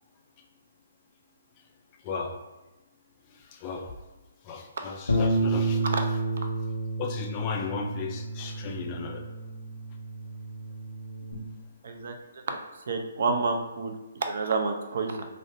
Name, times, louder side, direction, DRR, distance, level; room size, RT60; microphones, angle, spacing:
voice 1, 2.0-2.4 3.5-3.9 4.4-5.9 7.0-9.3, left 5 dB, 30° left, 3 dB, 0.3 m, -35 dB
Bass guitar, 5.1-11.3, right 2 dB, 80° left, 0.6 m, -30 dB
voice 2, 11.8-12.1 12.5-12.6 12.9-14.0 14.2-15.3, right 4 dB, 55° right, 5 dB, 0.4 m, -28 dB
3.6 x 2.1 x 2.5 m, 1.1 s
figure-of-eight pair, 135°, 0 cm